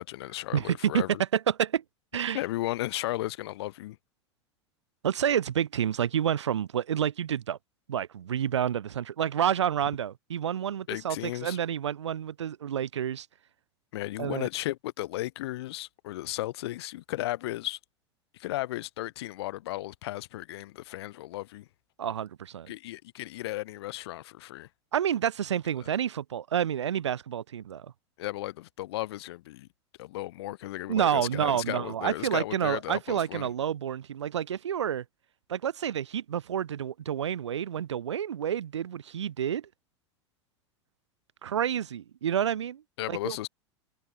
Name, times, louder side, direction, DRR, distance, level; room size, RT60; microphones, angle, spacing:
voice 1, 0.0-1.2 2.3-4.0 10.9-11.6 13.9-17.8 18.3-21.7 22.7-24.7 25.8-25.9 28.2-29.7 30.0-33.5 43.0-43.5, left 16 dB, 60° left, 2.8 m, -35 dB
voice 2, 0.5-1.0 1.3-1.8 2.1-2.4 5.0-7.6 7.9-13.3 14.2-14.5 22.0-22.7 24.9-27.9 30.9-35.0 35.5-39.7 41.4-42.8 43.1-43.5, right 9 dB, 70° right, 1.0 m, -29 dB
figure-of-eight pair, 85°, 15 cm